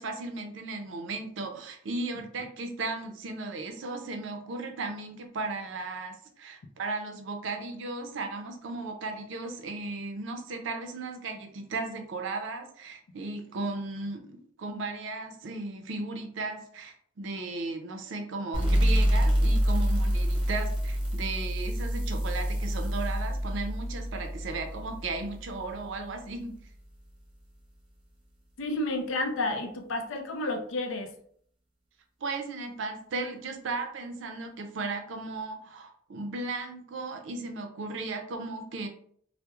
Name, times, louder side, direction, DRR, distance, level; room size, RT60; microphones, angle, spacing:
voice 1, 0.0-26.6 32.2-38.9, right 3 dB, 70° right, 5 dB, 0.4 m, -36 dB
sound 1, 18.5-25.8, equal, 25° right, 0.7 m, -27 dB
voice 2, 28.6-31.2, left 2 dB, 85° left, 5 dB, 0.4 m, -31 dB
2.3 x 2.0 x 2.9 m, 0.62 s
head